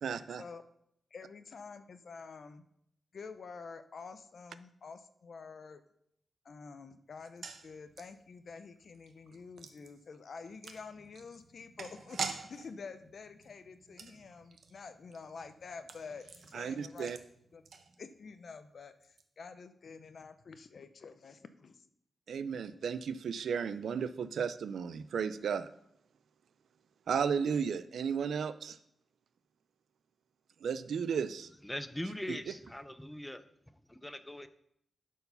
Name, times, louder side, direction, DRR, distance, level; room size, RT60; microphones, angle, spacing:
voice 1, 0.0-0.4 16.5-17.2 22.3-25.7 27.1-28.8 30.6-31.5, right 6 dB, 80° right, 14 dB, 0.5 m, -34 dB
voice 2, 1.1-2.6 3.1-5.8 6.4-17.1 17.5-17.6 18.0-21.9, left 5 dB, 50° left, 10 dB, 0.6 m, -48 dB
sound 1, 7.1-18.4 18.6-18.7 19.0-19.2, right 5 dB, 60° right, 0.8 m, -47 dB
voice 3, 31.6-33.4 33.9-34.5, left 1 dB, 5° left, 10 dB, 0.5 m, -41 dB
12.0 x 4.6 x 5.5 m, 0.74 s
wide cardioid pair, 165°, 0 cm